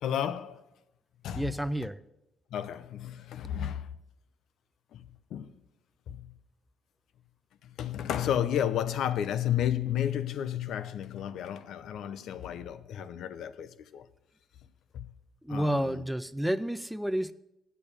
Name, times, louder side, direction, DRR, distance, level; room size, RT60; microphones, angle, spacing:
voice 1, 0.0-0.6 1.2-1.5 1.8-1.9 2.5-3.9 4.9-5.5 6.1-6.3 7.6-14.1 14.9-15.1 15.5-16.0, left 10 dB, 75° left, 0.6 m, -32 dB
voice 2, 1.3-2.0 15.4-17.3, right 1 dB, 5° right, 0.4 m, -30 dB
8.6 x 6.9 x 8.5 m
cardioid pair, 90°, 0 cm